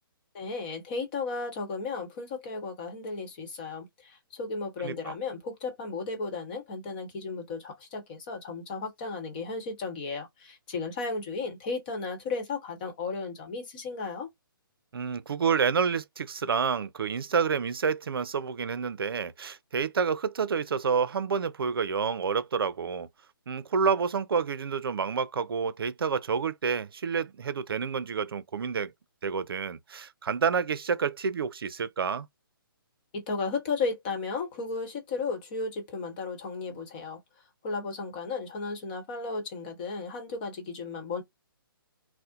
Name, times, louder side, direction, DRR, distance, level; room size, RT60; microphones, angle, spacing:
voice 1, 0.3-14.3 33.1-37.2 37.6-41.2, left 4 dB, 25° left, 1.0 m, -34 dB
voice 2, 4.8-5.1 14.9-23.1 23.5-28.9 29.2-32.3, right 6 dB, 80° right, 0.5 m, -29 dB
4.2 x 2.1 x 2.4 m
hypercardioid pair, 165°, 12 cm